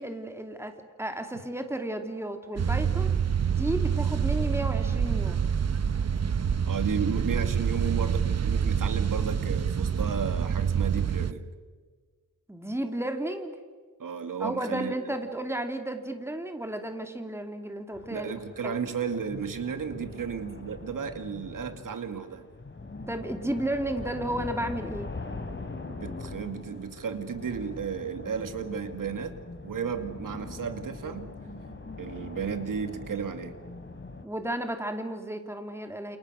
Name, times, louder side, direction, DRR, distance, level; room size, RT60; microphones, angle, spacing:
voice 1, 0.0-3.2 3.5-5.5 12.5-13.5 14.4-18.3 18.6-18.8 23.1-25.1 34.2-36.2, right 1 dB, 10° right, 5 dB, 2.8 m, -33 dB
sound 1, 2.6-11.3, right 7 dB, 55° right, 1.0 m, -27 dB
voice 2, 6.7-11.5 14.0-14.9 18.1-22.5 25.9-29.4 29.6-31.3 32.0-33.5, right 6 dB, 80° right, 8 dB, 2.3 m, -33 dB
sound 2, 17.9-34.3, left 3 dB, 35° left, 3.5 m, -42 dB
29.5 x 28.5 x 6.4 m, 1.5 s
wide cardioid pair, 100°, 32 cm